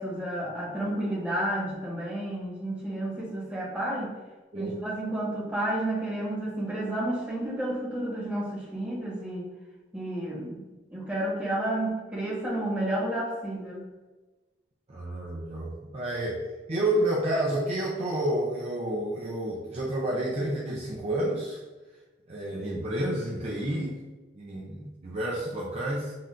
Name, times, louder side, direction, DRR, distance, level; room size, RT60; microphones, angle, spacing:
voice 1, 0.0-4.1 4.5-9.5 9.9-10.6 10.9-13.8, right 1 dB, 5° right, -7 dB, 1.3 m, -31 dB
voice 2, 14.9-21.6 22.3-24.0 24.4-26.1, right 1 dB, 35° right, -4 dB, 0.5 m, -30 dB
7.4 x 2.6 x 2.5 m, 1.2 s
head